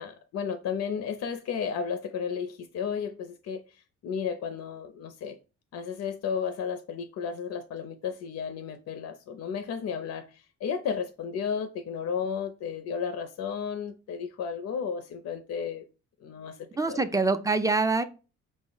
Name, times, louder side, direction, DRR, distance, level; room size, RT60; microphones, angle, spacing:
voice 1, 0.0-5.4 5.7-15.9 16.2-17.0, left 6 dB, 60° left, 0.5 m, -33 dB
voice 2, 16.8-18.0, right 3 dB, 10° right, 0.3 m, -25 dB
4.9 x 2.0 x 3.7 m
cardioid pair, 90°, 30 cm